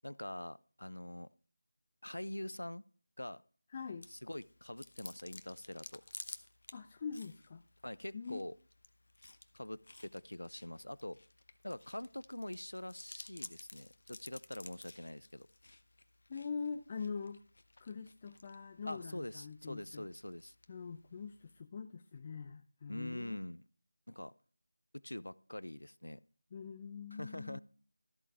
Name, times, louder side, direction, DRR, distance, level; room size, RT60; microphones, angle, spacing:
voice 1, 0.0-1.3 2.0-2.9 3.2-3.4 4.1-6.0 7.8-8.5 9.5-11.2 11.6-15.5 18.9-20.5 22.9-23.6 24.1-24.3 24.9-26.2 27.1-27.6, left 1 dB, 85° left, 0.5 m, -44 dB
voice 2, 3.7-4.1 6.7-7.6 8.1-8.4 16.3-17.4 17.8-20.1 20.7-23.4 26.5-27.6, left 5 dB, 25° left, 0.4 m, -43 dB
Chewing mastication, 4.0-21.6, left 2 dB, 60° left, 0.9 m, -55 dB
13.5 x 8.4 x 3.4 m
figure-of-eight pair, 165°, 0 cm